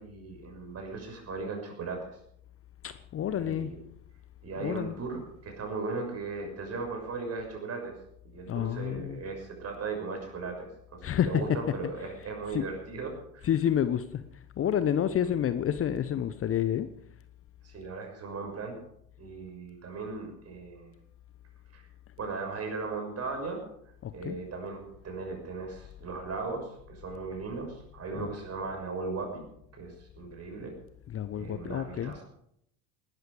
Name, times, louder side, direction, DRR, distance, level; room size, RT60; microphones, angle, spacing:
voice 1, 0.0-2.2 3.4-3.8 4.4-7.9 8.2-13.5 15.1-15.2 17.6-18.8 19.2-20.9 21.7-21.9 22.2-23.6 24.1-29.4 29.7-30.7 31.3-32.2, right 4 dB, 35° right, 3 dB, 6.5 m, -37 dB
voice 2, 2.8-3.8 4.6-4.9 8.5-9.2 11.0-11.7 12.5-12.7 13.4-14.2 14.6-16.9 24.0-24.4 28.2-28.3 31.1-32.1, left 9 dB, 35° left, 12 dB, 1.0 m, -29 dB
19.5 x 12.5 x 5.1 m, 0.72 s
figure-of-eight pair, 60°, 40 cm